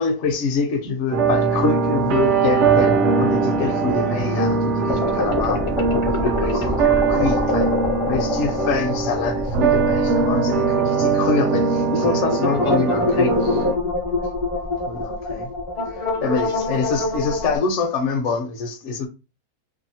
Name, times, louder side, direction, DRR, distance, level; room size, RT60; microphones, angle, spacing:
voice 1, 0.0-5.6 5.9-7.7 8.1-13.7 14.9-15.5 15.9-19.1, left 4 dB, 65° left, 0.8 m, -25 dB
sound 1, 1.1-13.7, right 5 dB, 65° right, 0.7 m, -21 dB
sound 2, 4.9-10.6 10.9-11.0 12.3-17.6, left 3 dB, 40° left, 0.4 m, -25 dB
2.7 x 2.3 x 2.7 m
omnidirectional pair, 1.6 m